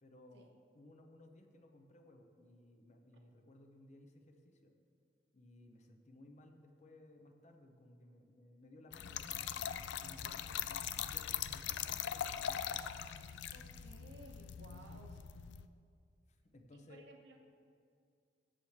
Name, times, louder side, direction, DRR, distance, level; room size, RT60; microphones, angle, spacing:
voice 1, 0.0-4.7 5.3-13.0 14.7-14.8 16.3-17.0, left 1 dB, 40° left, 4 dB, 0.7 m, -60 dB
Trickle dribble / Fill (with liquid), 8.9-15.7, left 9 dB, 75° left, 0.3 m, -41 dB
voice 2, 13.5-15.3 16.7-17.4, right 2 dB, 70° right, 2 dB, 0.8 m, -58 dB
13.5 x 7.1 x 3.2 m, 2.3 s
head